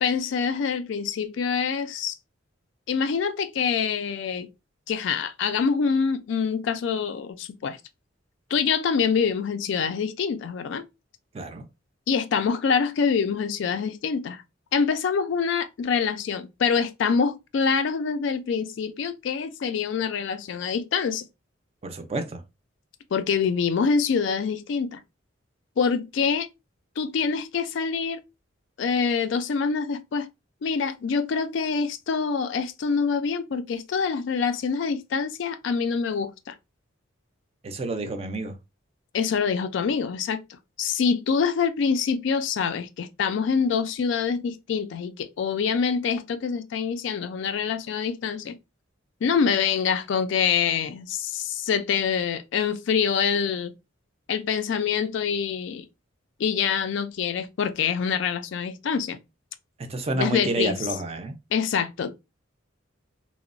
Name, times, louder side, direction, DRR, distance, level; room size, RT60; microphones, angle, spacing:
voice 1, 0.0-2.1 2.9-4.5 4.9-7.8 8.5-10.8 12.1-14.4 14.7-21.3 23.1-25.0 25.8-26.5 27.0-28.2 28.8-30.3 30.6-36.5 39.1-40.4 40.8-48.6 49.2-53.7 54.3-55.8 56.4-59.2 60.1-60.8 61.5-62.1, left 6 dB, 65° left, 0.3 m, -25 dB
voice 2, 11.3-11.7 21.8-22.4 37.6-38.5 59.9-61.4, right 2 dB, 30° right, 0.4 m, -29 dB
2.8 x 2.0 x 2.5 m
head